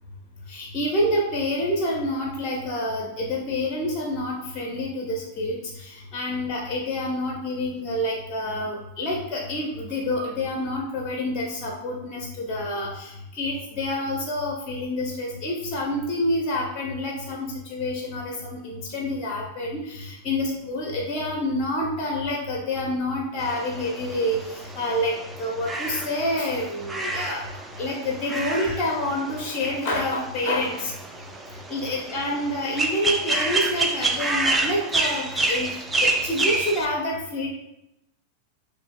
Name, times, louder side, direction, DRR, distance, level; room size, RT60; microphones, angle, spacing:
voice 1, 0.5-27.4 27.8-30.9 31.7-37.5, left 1 dB, 30° left, 0 dB, 0.7 m, -28 dB
sound 1, 23.4-36.9, right 2 dB, 10° right, 0.4 m, -29 dB
7.0 x 2.6 x 2.3 m, 0.86 s
figure-of-eight pair, 90°, 0 cm